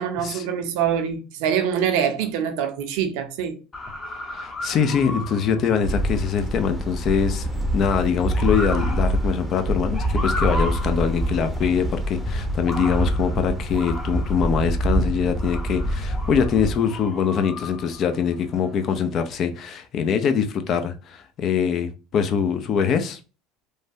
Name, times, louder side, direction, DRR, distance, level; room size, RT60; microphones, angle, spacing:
voice 1, 0.0-3.6, right 8 dB, 70° right, 0.6 m, -24 dB
Motor vehicle (road) / Siren, 3.7-19.3, left 2 dB, 25° left, 0.8 m, -36 dB
voice 2, 4.1-23.2, left 7 dB, 50° left, 0.5 m, -23 dB
sound 1, 5.8-16.8, right 1 dB, 5° right, 0.7 m, -25 dB
3.2 x 2.2 x 2.6 m
hypercardioid pair, 85°, 0 cm